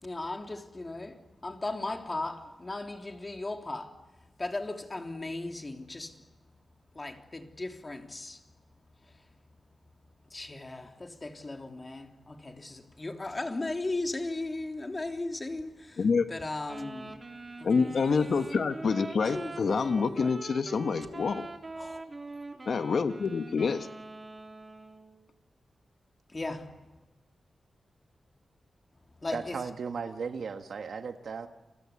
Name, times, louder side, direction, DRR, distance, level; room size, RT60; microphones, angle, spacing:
voice 1, 0.0-3.9 4.4-6.2 6.9-8.4 10.3-16.0 16.3-17.1 17.6-18.5 19.3-20.3 21.8-22.0 26.3-26.7 29.2-29.6, left 2 dB, 30° left, 3.4 m, -37 dB
Wind instrument woodwind instrument, 16.7-25.2, right 3 dB, 35° right, 3.8 m, -43 dB
voice 2, 17.6-21.5 22.7-23.9, left 5 dB, 65° left, 1.3 m, -27 dB
voice 3, 29.3-31.5, right 5 dB, 75° right, 1.6 m, -36 dB
29.0 x 23.0 x 8.5 m
wide cardioid pair, 90°, 0 cm